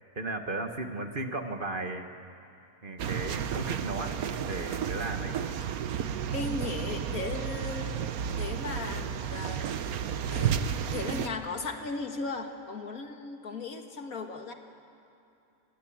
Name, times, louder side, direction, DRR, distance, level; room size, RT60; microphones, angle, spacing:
voice 1, 0.1-2.1 2.8-5.3, right 2 dB, 35° right, 5 dB, 1.6 m, -35 dB
sound 1, 3.0-11.3, right 8 dB, 75° right, 1.4 m, -32 dB
voice 2, 6.3-8.0 8.4-9.7 10.3-10.6 10.9-14.5, left 3 dB, 70° left, 4 dB, 2.3 m, -36 dB
28.5 x 20.0 x 8.8 m, 2.8 s
omnidirectional pair, 1.6 m